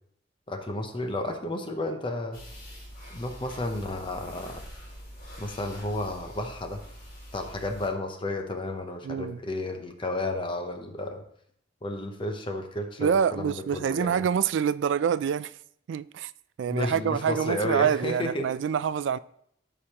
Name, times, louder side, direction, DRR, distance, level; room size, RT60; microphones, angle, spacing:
voice 1, 0.5-2.4 3.1-4.6 5.4-6.8 7.3-11.2 11.8-14.3 16.7-18.5, left 1 dB, 30° left, 0.7 m, -32 dB
sound 1, 2.3-7.9, equal, 50° left, 3.3 m, -45 dB
voice 2, 9.0-9.4 13.0-15.5 15.9-16.3 16.6-19.2, right 7 dB, 70° right, 0.3 m, -26 dB
13.0 x 5.0 x 2.9 m
head